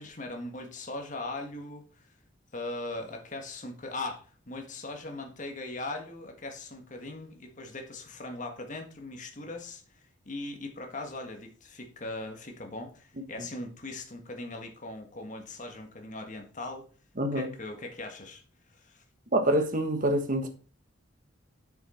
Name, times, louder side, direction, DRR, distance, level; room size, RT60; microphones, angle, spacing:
voice 1, 0.0-2.1 2.5-16.9 17.3-18.4 18.7-19.0, left 2 dB, 40° left, 1.6 m, -40 dB
voice 2, 17.2-17.5 19.3-20.5, right 1 dB, 45° right, 1.5 m, -26 dB
8.1 x 6.4 x 4.4 m
head